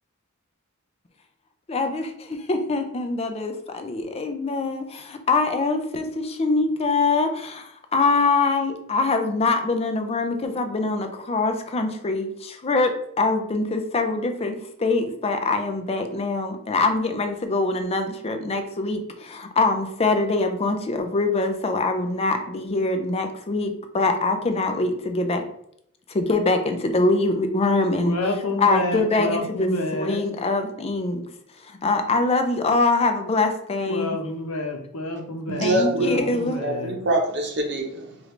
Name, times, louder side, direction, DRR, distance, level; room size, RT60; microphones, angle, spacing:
voice 1, 1.7-12.9 13.2-25.4 26.1-28.2 28.6-31.3 31.7-34.2 35.6-36.6, left 3 dB, 30° left, 6 dB, 0.5 m, -24 dB
voice 2, 28.0-30.2 33.8-37.0, left 1 dB, 80° left, 3 dB, 0.8 m, -29 dB
voice 3, 35.5-36.1 36.6-38.2, right 1 dB, 55° right, 2 dB, 0.8 m, -24 dB
4.8 x 2.5 x 3.1 m, 0.72 s
head